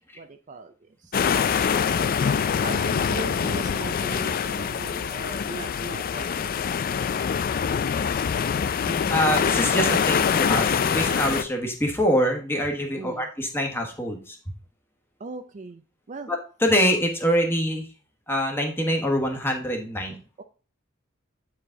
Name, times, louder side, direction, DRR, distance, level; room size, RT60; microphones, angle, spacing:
voice 1, 0.1-0.7 1.0-1.3 2.6-6.7 13.0-13.3 15.2-16.3 20.4-20.5, right 3 dB, 35° right, 8 dB, 0.4 m, -39 dB
sound 1, 1.1-11.4, left 7 dB, 45° left, 0.4 m, -24 dB
voice 2, 8.8-14.4 16.3-17.9 18.3-20.2, equal, 10° left, 2 dB, 1.3 m, -25 dB
8.5 x 4.8 x 3.7 m, 0.38 s
head